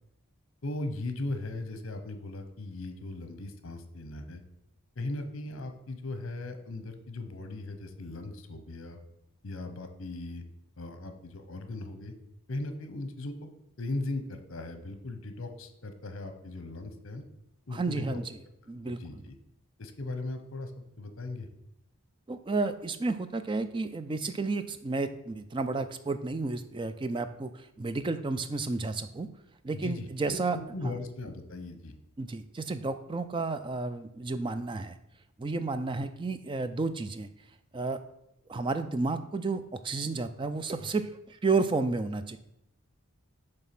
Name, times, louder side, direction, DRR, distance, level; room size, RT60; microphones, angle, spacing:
voice 1, 0.6-4.4 5.0-9.0 9.4-10.4 10.8-12.1 12.5-13.5 13.8-17.2 17.7-18.2 18.8-19.4 19.8-20.7 21.0-21.5 29.7-32.0, left 2 dB, 65° left, 8 dB, 0.8 m, -38 dB
voice 2, 17.7-18.4 18.7-19.0 22.3-29.3 29.6-30.6 30.8-30.9 32.2-35.0 35.4-37.3 37.7-38.0 38.5-42.4, right 3 dB, 20° right, 11 dB, 0.3 m, -31 dB
7.1 x 3.3 x 5.8 m, 0.82 s
head